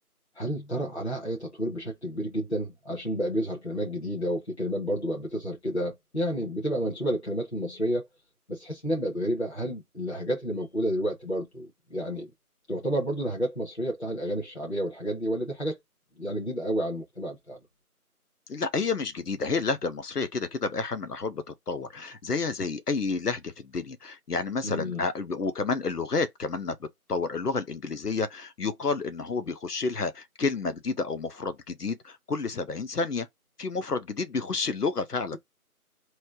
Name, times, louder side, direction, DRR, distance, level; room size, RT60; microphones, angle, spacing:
voice 1, 0.4-8.1 8.5-12.3 12.7-15.8 16.2-17.6 24.6-25.0, equal, 45° left, 1.2 m, -30 dB
voice 2, 18.5-33.3 33.6-35.4, left 4 dB, 90° left, 0.8 m, -30 dB
3.2 x 2.8 x 4.6 m
figure-of-eight pair, 180°, 46 cm